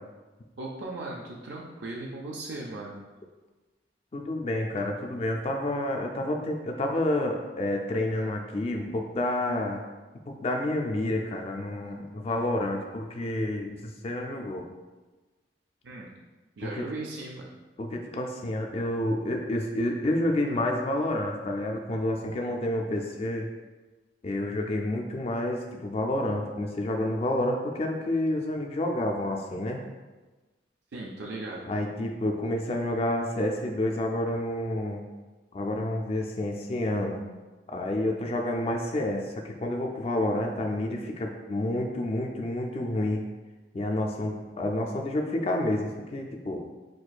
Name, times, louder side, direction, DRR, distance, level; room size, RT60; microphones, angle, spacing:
voice 1, 0.6-3.0 15.8-16.1 16.6-17.5 30.9-31.7, right 2 dB, 80° right, -2 dB, 0.5 m, -37 dB
voice 2, 4.1-9.8 10.3-14.7 16.6-16.9 17.8-23.5 24.2-29.8 31.6-35.0 35.5-37.2 37.7-43.2 43.7-46.7, left 1 dB, 35° left, 2 dB, 0.3 m, -29 dB
6.0 x 2.6 x 2.3 m, 1.2 s
head